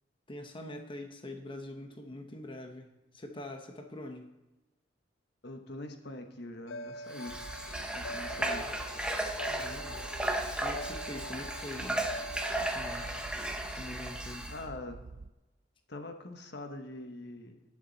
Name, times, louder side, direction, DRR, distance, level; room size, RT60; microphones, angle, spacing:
voice 1, 0.3-4.3 9.4-10.2 10.6-12.1 12.6-13.2 13.7-14.6, left 1 dB, 30° left, 4 dB, 1.1 m, -44 dB
voice 2, 5.4-7.4 7.9-8.7 14.5-15.0 15.9-17.6, left 2 dB, 65° left, 5 dB, 1.2 m, -43 dB
sound 1, 6.7-13.3, left 1 dB, 85° left, 0.5 m, -45 dB
Water / Water tap faucet, 7.1-14.6, right 1 dB, 5° right, 1.0 m, -35 dB
sound 2, 7.3-15.3, right 3 dB, 70° right, 0.5 m, -47 dB
19.0 x 7.3 x 4.1 m, 1.0 s
head